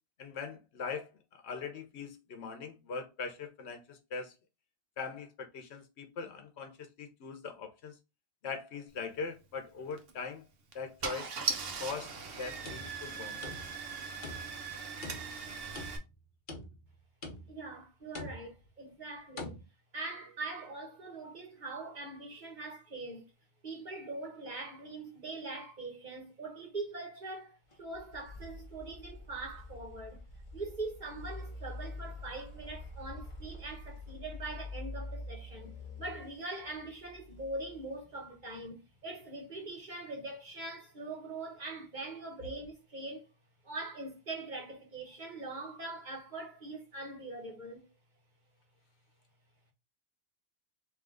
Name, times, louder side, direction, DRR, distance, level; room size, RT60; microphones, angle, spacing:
voice 1, 0.2-4.3 5.0-8.0 8.4-10.4 10.7-11.4 11.8-13.4, left 5 dB, 80° left, 1.1 m, -41 dB
Car / Engine starting, 9.9-10.1 10.7-10.8 11.0-16.0, right 5 dB, 65° right, 1.0 m, -39 dB
sound 1, 12.5-13.9 14.2-14.7 15.0-16.1 16.5-16.9 17.2-17.7 18.2-18.7 19.4-19.6, left 2 dB, 50° left, 1.1 m, -45 dB
voice 2, 17.5-19.6 19.9-23.3 23.6-30.2 30.5-43.3 43.6-47.9, right 2 dB, 45° right, 1.2 m, -42 dB
sound 2, 27.7-38.5, left 2 dB, 30° left, 0.9 m, -46 dB
3.6 x 2.8 x 3.6 m
omnidirectional pair, 1.1 m